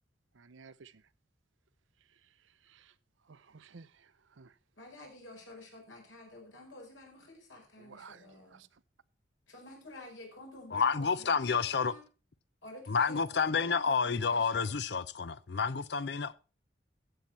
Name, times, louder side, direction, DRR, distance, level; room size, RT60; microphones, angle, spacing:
voice 1, 0.3-1.0 2.1-2.3 2.6-2.9 3.3-4.5 7.8-8.7, right 5 dB, 85° right, 0.6 m, -55 dB
voice 2, 4.8-8.6 9.5-12.0 12.6-14.8, left 2 dB, 85° left, 5.3 m, -50 dB
voice 3, 10.7-11.9 12.9-16.4, left 5 dB, 60° left, 0.6 m, -30 dB
14.5 x 8.0 x 4.3 m
head